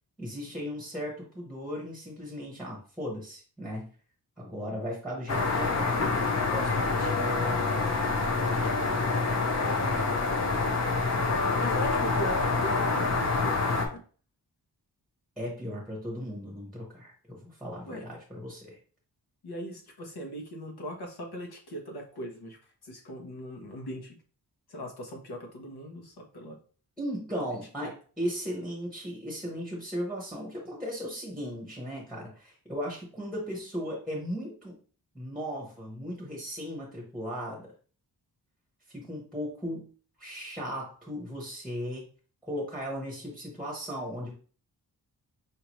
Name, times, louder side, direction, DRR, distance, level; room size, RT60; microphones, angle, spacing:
voice 1, 0.2-3.9 4.4-6.0 6.3-7.7 15.4-18.8 27.0-34.8 35.1-37.7 38.9-39.9 40.2-42.0 42.4-44.3, equal, ahead, -3 dB, 1.0 m, -37 dB
sound 1, 5.3-13.9, left 3 dB, 40° left, 0.7 m, -27 dB
voice 2, 9.6-10.0 11.2-14.0 17.9-18.1 19.4-24.2 24.7-26.6 27.8-27.9, right 1 dB, 70° left, 2 dB, 1.1 m, -40 dB
5.1 x 2.8 x 3.0 m, 0.41 s
wide cardioid pair, 160°, 39 cm